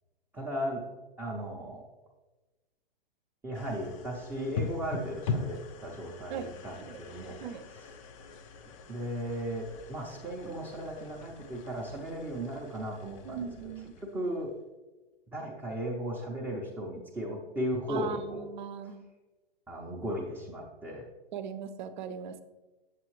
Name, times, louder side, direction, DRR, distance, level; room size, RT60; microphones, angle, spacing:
voice 1, 0.3-0.8 1.2-1.8 3.4-7.4 7.8-7.9 8.9-13.7 14.0-14.5 15.3-18.5 19.7-21.1, equal, 5° right, -4 dB, 0.7 m, -36 dB
sound 1, 3.5-14.6, left 4 dB, 35° left, 0.6 m, -41 dB
voice 2, 13.2-13.9 17.9-19.0 21.3-22.4, right 7 dB, 50° right, 10 dB, 0.7 m, -39 dB
7.5 x 7.4 x 3.1 m, 1.1 s
hypercardioid pair, 125°, 30 cm